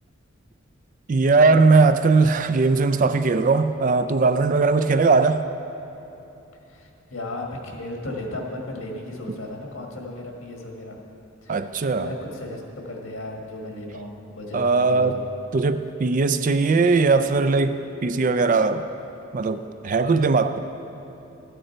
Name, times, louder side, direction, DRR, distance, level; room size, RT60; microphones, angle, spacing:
voice 1, 1.1-5.5 11.5-12.1 14.5-15.2 15.5-18.9 19.3-20.6, right 4 dB, 40° right, 11 dB, 0.4 m, -19 dB
voice 2, 6.7-11.0 11.4-15.2, left 1 dB, 85° left, 1 dB, 1.6 m, -35 dB
13.0 x 9.1 x 4.4 m, 3.0 s
head